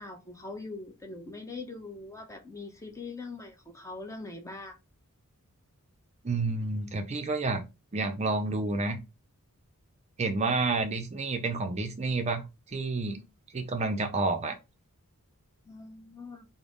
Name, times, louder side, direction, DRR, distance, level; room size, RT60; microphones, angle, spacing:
voice 1, 0.0-4.8 15.7-16.4, left 3 dB, 15° left, 0.6 m, -42 dB
voice 2, 6.2-7.6 7.9-9.0 10.2-12.4 12.7-13.2 13.5-14.6, right 3 dB, 30° right, 0.5 m, -29 dB
3.7 x 2.1 x 3.4 m
head